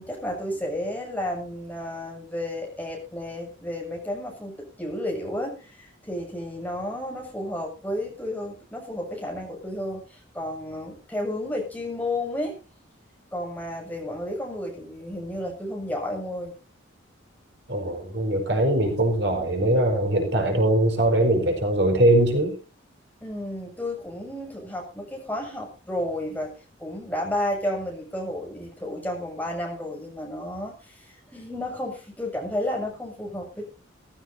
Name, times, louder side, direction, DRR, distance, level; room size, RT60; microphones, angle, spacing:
voice 1, 0.0-12.6 13.3-16.6 23.2-26.5 26.8-33.7, left 1 dB, 10° left, 0 dB, 6.8 m, -32 dB
voice 2, 17.7-22.6, right 1 dB, 60° right, 3 dB, 4.9 m, -21 dB
18.5 x 16.0 x 2.8 m, 0.35 s
head